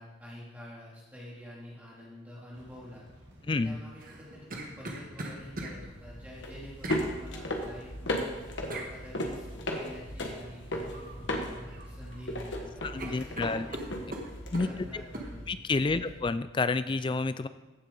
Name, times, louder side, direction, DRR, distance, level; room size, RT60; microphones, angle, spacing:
voice 1, 0.0-3.0 3.6-8.4 8.8-9.5 9.7-13.7 14.2-14.3 14.6-16.0, equal, 10° right, -7 dB, 2.8 m, -48 dB
sound 1, 2.5-15.5, equal, 65° right, 2.8 m, -55 dB
voice 2, 3.5-3.8 12.8-13.7 14.5-14.7 15.5-17.5, left 3 dB, 25° left, 13 dB, 0.3 m, -29 dB
sound 2, 4.0-5.8 6.8-7.1 8.7-8.9 10.9-11.2 11.5-12.2 12.5-12.6 13.0-14.7 15.1-15.3, right 2 dB, 45° right, 1.3 m, -40 dB
sound 3, 5.4-16.3, left 1 dB, 65° left, 1.4 m, -37 dB
15.0 x 6.9 x 3.9 m, 1.1 s
head